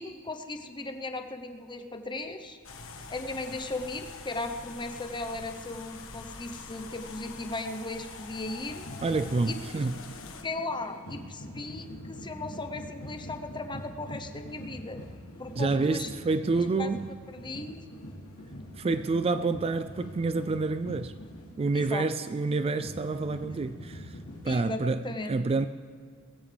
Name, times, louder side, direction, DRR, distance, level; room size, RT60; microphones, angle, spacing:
voice 1, 0.0-2.6 3.1-8.9 9.5-9.8 10.4-15.0 15.4-16.1 16.8-16.9 17.3-17.8 21.7-22.1 24.4-25.3, left 2 dB, 20° left, 0.9 m, -37 dB
sound 1, 2.6-10.4, left 4 dB, 65° left, 1.5 m, -45 dB
sound 2, 8.7-24.6, left 1 dB, 85° left, 3.3 m, -44 dB
voice 2, 9.0-10.1 15.6-17.1 18.8-21.1 21.6-24.2 24.4-25.7, right 3 dB, 25° right, 0.3 m, -28 dB
21.0 x 15.0 x 3.4 m
head